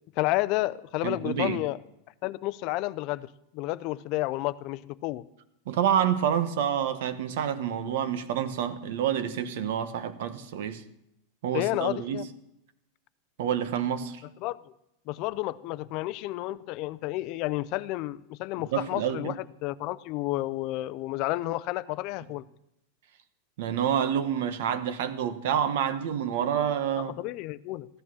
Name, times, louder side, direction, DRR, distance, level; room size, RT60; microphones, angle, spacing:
voice 1, 0.2-1.8 2.2-3.3 3.5-5.2 11.5-12.3 14.4-14.6 15.1-19.3 19.6-22.4 27.1-27.9, left 18 dB, 35° left, 0.5 m, -31 dB
voice 2, 1.0-1.6 5.7-10.8 11.4-12.3 13.4-14.2 18.7-19.4 23.6-27.1, right 9 dB, 60° right, 1.1 m, -28 dB
15.0 x 11.0 x 6.3 m
supercardioid pair, 170°, 0 cm